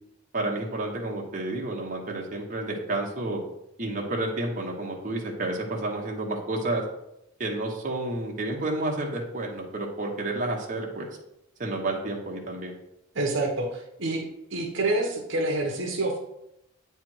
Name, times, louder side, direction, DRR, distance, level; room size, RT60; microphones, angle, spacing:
voice 1, 0.3-3.4 3.8-6.8 7.4-11.1 11.6-12.7, right 2 dB, 35° right, -1 dB, 1.1 m, -30 dB
voice 2, 13.1-14.2 14.5-16.2, right 2 dB, 60° right, 1 dB, 1.0 m, -27 dB
8.6 x 3.4 x 4.6 m, 0.81 s
head